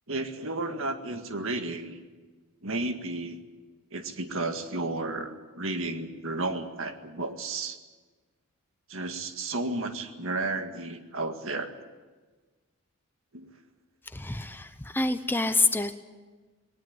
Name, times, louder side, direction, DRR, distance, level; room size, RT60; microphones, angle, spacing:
voice 1, 0.1-2.0 2.6-3.4 3.9-7.8 8.9-11.7 13.3-13.5, right 2 dB, 65° right, 6 dB, 2.0 m, -33 dB
voice 2, 14.1-16.0, left 2 dB, 10° left, 10 dB, 0.8 m, -27 dB
20.5 x 18.5 x 8.9 m, 1.3 s
head